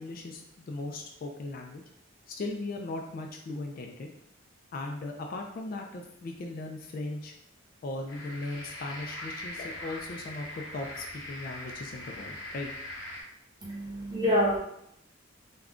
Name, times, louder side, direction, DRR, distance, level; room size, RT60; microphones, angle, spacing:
voice 1, 0.0-1.8 2.3-4.1 4.7-7.3 7.8-12.7, left 2 dB, 50° left, 3 dB, 0.3 m, -38 dB
sound 1, 8.1-13.2, left 1 dB, 90° left, 0.9 m, -41 dB
voice 2, 13.6-14.6, equal, 20° right, -5 dB, 0.9 m, -26 dB
2.4 x 2.2 x 3.5 m, 0.74 s
head